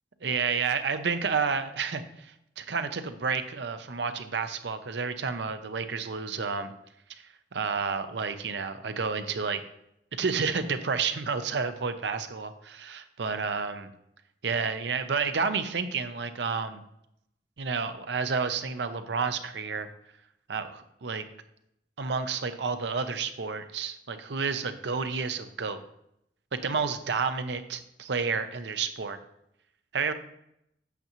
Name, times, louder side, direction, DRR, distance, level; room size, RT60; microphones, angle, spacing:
voice 1, 0.2-6.7 7.5-9.6 10.1-13.9 14.4-16.8 17.6-19.9 20.5-21.2 22.0-25.8 26.5-29.2 29.9-30.1, right 5 dB, 70° right, 9 dB, 0.6 m, -30 dB
8.2 x 6.7 x 3.0 m, 0.78 s
head